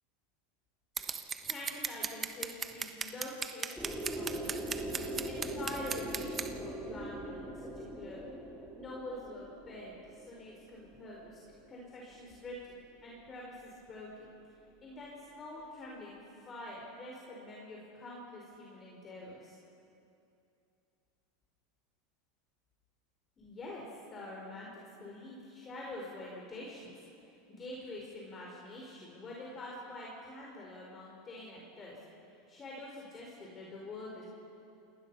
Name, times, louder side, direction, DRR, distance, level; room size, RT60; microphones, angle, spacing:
Scissors, 1.0-6.5, right 6 dB, 25° right, 1.3 m, -37 dB
voice 1, 1.4-4.6 5.2-8.3 8.7-11.4 11.7-12.8 13.0-14.3 14.8-16.2 16.4-19.6 23.4-32.0 32.3-34.2, left 1 dB, 30° left, -3 dB, 5.1 m, -46 dB
sound 1, 3.8-11.6, right 1 dB, ahead, 3.2 m, -41 dB
28.0 x 19.0 x 5.8 m, 2.7 s
hypercardioid pair, 105°, 0 cm